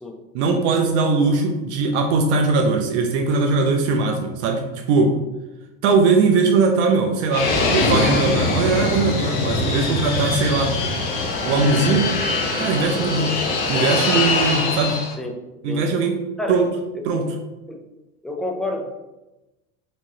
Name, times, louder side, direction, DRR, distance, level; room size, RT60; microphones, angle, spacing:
voice 1, 0.3-4.6 4.9-5.2 5.8-10.7 11.4-12.1 12.6-13.4 13.7-15.0 15.6-16.2 16.5-16.6 17.0-17.4, right 4 dB, 75° right, 2 dB, 0.7 m, -20 dB
Fixed-wing aircraft airplane, 7.3-15.1, left 3 dB, 65° left, 1.2 m, -22 dB
voice 2, 18.2-18.9, left 1 dB, ahead, 2 dB, 0.3 m, -29 dB
4.6 x 3.0 x 2.7 m, 1.0 s
supercardioid pair, 115°, 34 cm